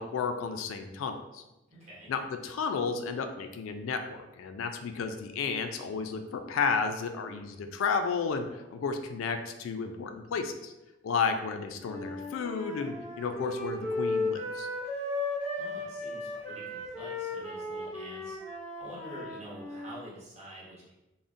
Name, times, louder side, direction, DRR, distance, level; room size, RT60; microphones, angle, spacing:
voice 1, 0.0-1.4 2.1-10.7 11.0-14.7, left 5 dB, 85° left, 6 dB, 0.3 m, -32 dB
voice 2, 1.7-2.1 15.6-20.9, equal, 35° right, -6 dB, 0.9 m, -47 dB
Wind instrument woodwind instrument, 11.8-19.9, left 2 dB, 5° left, 0.6 m, -35 dB
3.7 x 2.0 x 2.5 m, 0.96 s
head